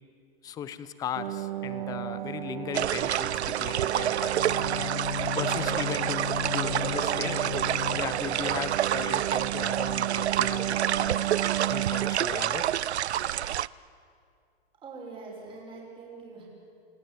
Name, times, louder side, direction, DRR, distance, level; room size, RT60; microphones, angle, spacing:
voice 1, 0.4-4.9 5.4-6.3 6.5-7.7 8.0-11.3 11.7-12.7, left 9 dB, 10° left, 14 dB, 0.7 m, -37 dB
sound 1, 1.1-12.2, right 13 dB, 50° right, 0.9 m, -34 dB
sound 2, 2.7-13.7, right 11 dB, 85° right, 0.7 m, -28 dB
Bowed string instrument, 4.3-8.5, left 10 dB, 65° left, 1.0 m, -36 dB
voice 2, 14.8-16.4, right 4 dB, 15° right, -3 dB, 6.3 m, -43 dB
29.0 x 19.0 x 9.2 m, 2.3 s
hypercardioid pair, 155°, 32 cm